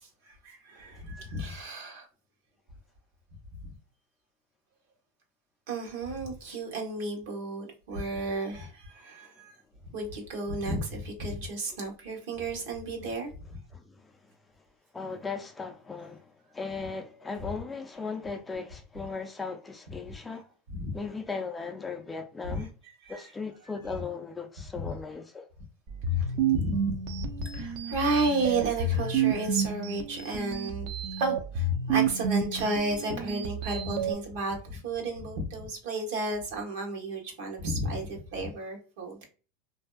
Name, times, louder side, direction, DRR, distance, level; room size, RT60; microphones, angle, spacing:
voice 1, 0.0-2.1 5.7-9.5 9.9-13.4 20.7-20.9 22.4-22.6 23.0-23.2 26.1-30.9 31.2-39.2, right 2 dB, 75° right, 1.0 m, -33 dB
voice 2, 13.7-14.3 14.9-20.5 20.9-22.7 23.1-25.5, left 4 dB, 10° left, 0.4 m, -37 dB
sound 1, 25.9-34.1, right 5 dB, 50° right, 0.5 m, -30 dB
2.6 x 2.3 x 2.2 m
supercardioid pair, 130°, 0 cm